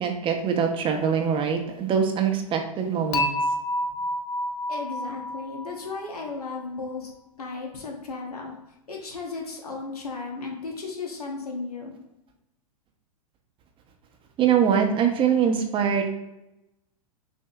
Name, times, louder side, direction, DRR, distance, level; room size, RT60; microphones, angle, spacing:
voice 1, 0.0-3.3 14.4-16.1, right 7 dB, 25° right, 5 dB, 0.8 m, -23 dB
Dishes pots and pans / Chink clink, 3.1-6.3, left 1 dB, 40° left, 0.6 m, -29 dB
voice 2, 4.7-7.1 7.4-8.5 8.9-11.9, left 4 dB, 85° left, 0 dB, 1.0 m, -35 dB
6.2 x 2.7 x 2.3 m, 0.91 s
hypercardioid pair, 105°, 19 cm